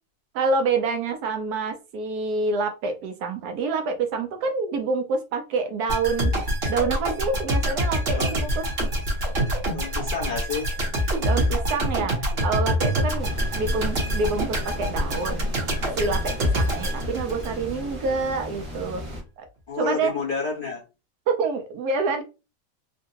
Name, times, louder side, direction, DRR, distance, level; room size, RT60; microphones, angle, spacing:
voice 1, 0.3-6.3 6.7-8.6 11.2-12.2 12.4-15.5 16.0-19.0 19.4-19.5 19.8-20.1 21.3-22.2, right 4 dB, 70° right, 5 dB, 1.0 m, -27 dB
sound 1, 5.9-17.9 18.2-18.4, equal, 45° right, 1.0 m, -26 dB
voice 2, 9.7-10.7 17.0-17.1 19.7-20.8, left 5 dB, 40° left, -4 dB, 0.9 m, -30 dB
sound 2, 13.2-19.2, left 1 dB, 30° right, 0.7 m, -36 dB
3.7 x 2.2 x 2.7 m, 0.29 s
omnidirectional pair, 1.8 m